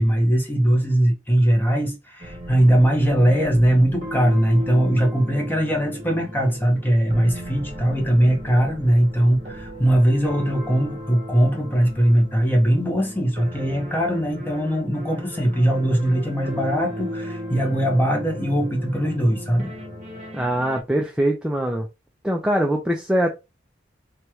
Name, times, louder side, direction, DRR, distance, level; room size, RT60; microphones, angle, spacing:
voice 1, 0.0-19.7, right 1 dB, 10° left, 1.0 m, -20 dB
sound 1, 2.2-20.8, equal, 40° right, 0.9 m, -36 dB
voice 2, 20.3-21.9 22.2-23.4, right 1 dB, 5° right, 0.4 m, -22 dB
3.1 x 2.3 x 2.8 m
head